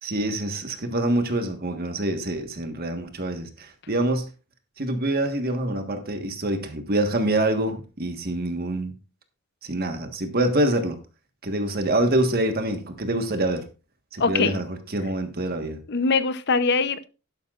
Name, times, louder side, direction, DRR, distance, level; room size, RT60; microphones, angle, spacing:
voice 1, 0.0-4.3 4.8-8.9 9.6-11.0 11.4-13.7 14.1-15.8, right 1 dB, 45° right, 1.5 m, -26 dB
voice 2, 14.2-14.6 15.9-17.1, left 4 dB, 55° left, 0.7 m, -22 dB
11.5 x 11.5 x 2.5 m
head